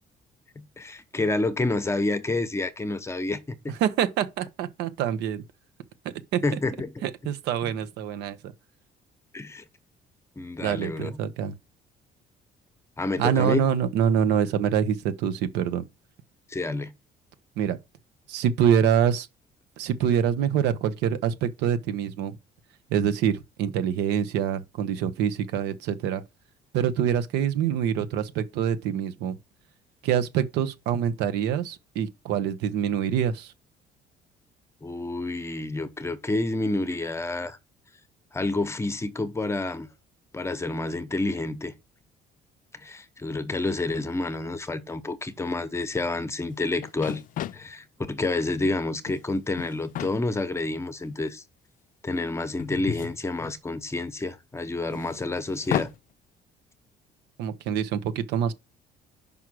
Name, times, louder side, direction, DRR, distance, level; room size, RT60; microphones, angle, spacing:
voice 1, 0.6-3.6 6.4-6.9 9.3-9.6 10.4-11.2 13.0-13.6 16.5-16.9 34.8-37.6 38.3-39.9 40.3-41.7 42.8-47.2 47.5-51.4 52.0-55.9, left 2 dB, 15° left, 0.9 m, -29 dB
voice 2, 3.8-5.4 6.3-6.6 7.0-8.4 10.6-11.5 13.2-15.8 17.6-17.8 18.3-19.3 19.8-22.4 22.9-26.2 26.7-29.4 30.0-33.5 57.4-58.5, right 9 dB, 90° right, 0.9 m, -25 dB
sound 1, 46.5-46.6 46.8-47.7 48.8-49.2 49.6-50.2 51.0-51.1 52.6-53.9 54.9-56.0, left 11 dB, 50° left, 0.4 m, -33 dB
5.5 x 4.7 x 6.1 m
cardioid pair, 110°, 17 cm